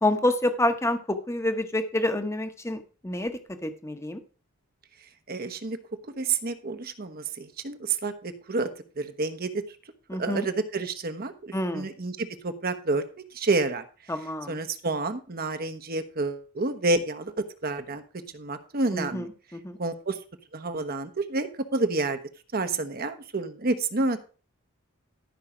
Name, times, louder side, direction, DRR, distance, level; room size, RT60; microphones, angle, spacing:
voice 1, 0.0-4.2 10.1-10.5 11.5-11.9 14.1-14.6 18.9-19.8, left 1 dB, 15° left, 8 dB, 1.0 m, -28 dB
voice 2, 5.3-5.8 6.2-8.7 9.0-9.6 10.2-13.0 13.3-13.8 14.5-19.3 19.8-20.2 20.5-22.2 22.5-24.2, right 3 dB, 45° right, 8 dB, 1.0 m, -29 dB
13.0 x 5.6 x 4.9 m, 0.36 s
head